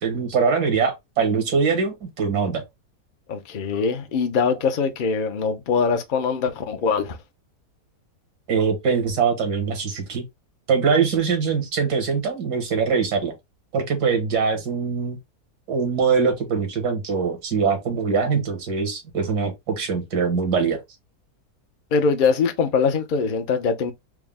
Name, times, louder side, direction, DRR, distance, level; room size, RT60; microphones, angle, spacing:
voice 1, 0.0-2.6 8.5-10.2 10.7-13.3 13.7-15.2 15.7-20.8, right 5 dB, 85° right, 1.8 m, -22 dB
voice 2, 3.3-7.2 21.9-23.9, left 5 dB, 70° left, 0.4 m, -22 dB
4.5 x 2.0 x 3.4 m
omnidirectional pair, 1.6 m